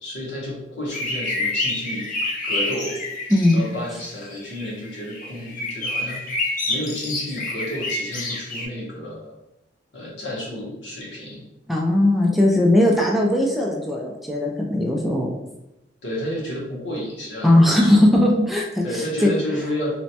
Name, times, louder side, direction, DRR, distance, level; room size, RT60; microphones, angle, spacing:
voice 1, 0.0-2.1 2.4-3.0 3.5-6.4 6.7-9.3 9.9-11.5 16.0-18.0 18.8-20.0, equal, 75° left, -3 dB, 0.9 m, -31 dB
sound 1, 0.9-3.8 4.2-8.7, left 2 dB, 50° left, 0.6 m, -28 dB
voice 2, 3.3-3.6 11.7-15.3 17.4-19.3, left 1 dB, ahead, -2 dB, 0.3 m, -18 dB
3.0 x 2.1 x 2.7 m, 0.90 s
head